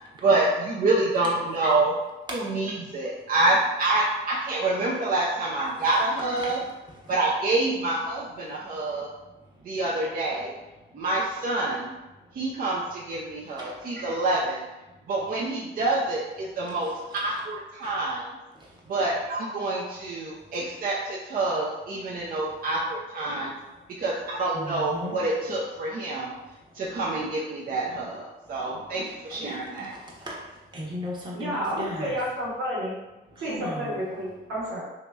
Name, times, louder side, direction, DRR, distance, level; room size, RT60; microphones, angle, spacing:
voice 1, 0.2-1.9 2.5-6.6 7.1-9.1 9.6-10.5 10.9-11.9 12.3-14.6 15.1-16.9 17.2-18.2 18.9-23.5 24.0-26.3 26.7-29.9, right 2 dB, 45° right, -4 dB, 0.6 m, -27 dB
voice 2, 5.7-6.0 6.3-7.1 8.7-9.8 10.8-11.0 12.2-12.4 13.2-14.0 14.9-15.0 16.7-17.2 17.8-17.9 18.5-18.9 20.3-20.5 22.1-22.4 23.3-24.0 24.5-25.2 26.3-27.0 28.4-32.2 33.3-34.1, left 1 dB, 20° right, -4 dB, 1.0 m, -41 dB
voice 3, 31.3-33.0 33.4-34.8, equal, 90° right, -7 dB, 1.5 m, -30 dB
2.9 x 2.8 x 3.4 m, 1.0 s
cardioid pair, 90°, 20 cm